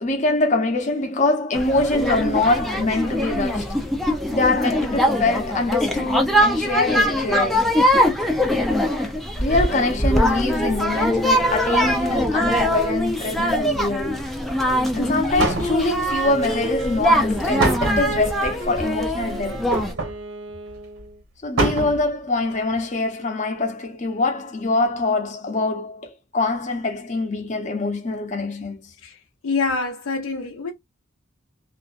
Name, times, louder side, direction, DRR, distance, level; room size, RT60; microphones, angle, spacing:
voice 1, 0.0-3.8 4.3-7.7 9.4-14.2 14.9-19.7 21.4-28.8, left 2 dB, 35° left, 0.6 m, -24 dB
sound 1, 1.5-19.9, equal, ahead, 0.4 m, -22 dB
sound 2, 15.0-15.1 15.4-16.1 17.6-18.3 19.7-20.2 20.7-20.8 21.0-21.1 21.6-22.1 22.5-22.6, right 2 dB, 75° right, 1.3 m, -24 dB
Wind instrument woodwind instrument, 16.2-21.2, right 1 dB, 55° right, 0.7 m, -36 dB
voice 2, 29.0-30.7, left 4 dB, 90° left, 0.5 m, -26 dB
2.5 x 2.1 x 2.4 m
head